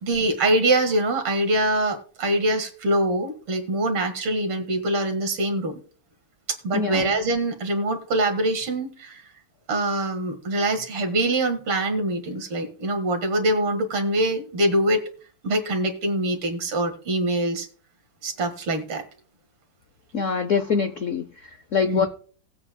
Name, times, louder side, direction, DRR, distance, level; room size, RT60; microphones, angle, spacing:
voice 1, 0.0-5.7 6.5-9.2 9.7-15.0 15.4-17.7 18.2-19.0 21.8-22.1, right 1 dB, 80° right, 6 dB, 2.7 m, -24 dB
voice 2, 6.7-7.1 20.1-22.1, left 5 dB, 85° left, 9 dB, 0.6 m, -24 dB
19.5 x 8.1 x 2.3 m, 0.42 s
omnidirectional pair, 2.4 m